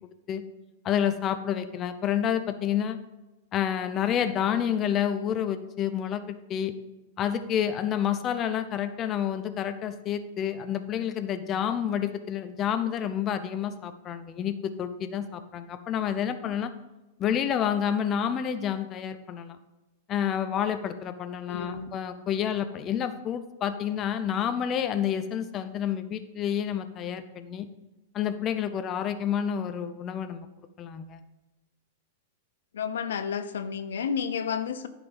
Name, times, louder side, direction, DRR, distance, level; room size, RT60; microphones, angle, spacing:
voice 1, 0.8-3.0 3.5-6.8 7.2-16.7 17.2-19.6 20.1-27.7 28.1-30.5 30.8-31.2, left 9 dB, 30° left, 9 dB, 0.6 m, -29 dB
voice 2, 21.5-21.9 32.7-34.9, left 7 dB, 85° left, 11 dB, 0.7 m, -31 dB
10.5 x 5.0 x 5.4 m, 1.0 s
hypercardioid pair, 135°, 0 cm